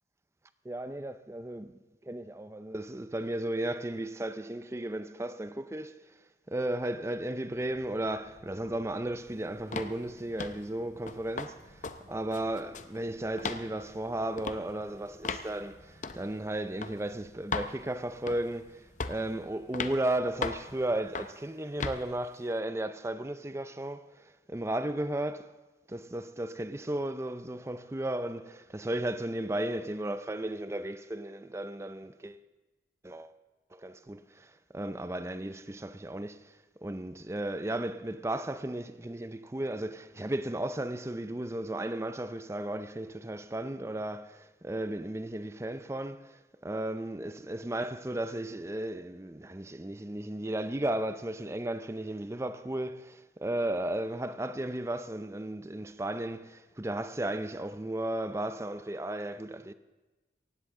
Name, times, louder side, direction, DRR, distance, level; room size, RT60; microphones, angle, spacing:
voice 1, 0.6-6.0 6.5-25.5 25.9-32.4 33.0-33.3 33.7-36.5 36.8-59.7, right 1 dB, 15° right, 0.5 m, -35 dB
sound 1, 7.5-21.0, equal, 80° left, 4.6 m, -59 dB
sound 2, 9.7-10.0 10.4-10.6 11.1-11.5 11.8-12.0 12.3-12.9 13.4-13.6 14.4-14.6 15.2-15.5 16.0-16.2 16.8-16.9 17.5-17.7 18.3-18.6 19.0-19.3 19.7-20.0 20.4-20.7 21.2-21.4 21.8-22.0, left 4 dB, 45° left, 0.6 m, -35 dB
18.0 x 15.5 x 3.7 m
head